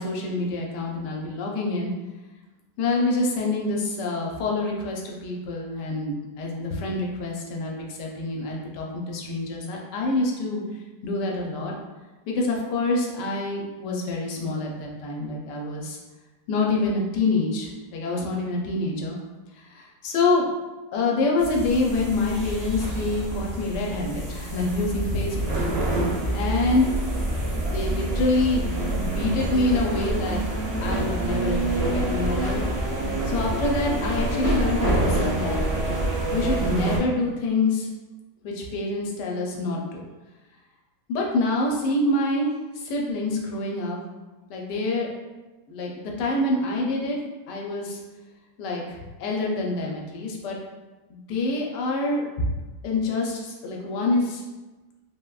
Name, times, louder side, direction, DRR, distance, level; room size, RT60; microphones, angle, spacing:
voice 1, 0.0-1.9 2.8-10.6 11.0-11.7 12.3-16.0 16.5-19.2 19.7-20.5 20.9-25.6 26.3-26.9 27.5-28.6 29.0-30.4 30.8-32.6 33.3-35.6 36.3-37.9 38.4-40.0 41.1-44.0 44.5-45.1 45.7-47.2 47.5-48.0 48.6-50.6 51.1-52.2 52.8-54.4, left 2 dB, 90° left, -1 dB, 1.2 m, -26 dB
sound 1, 21.4-37.0, right 1 dB, 55° right, 0.7 m, -26 dB
3.5 x 2.0 x 2.3 m, 1.2 s
omnidirectional pair, 1.8 m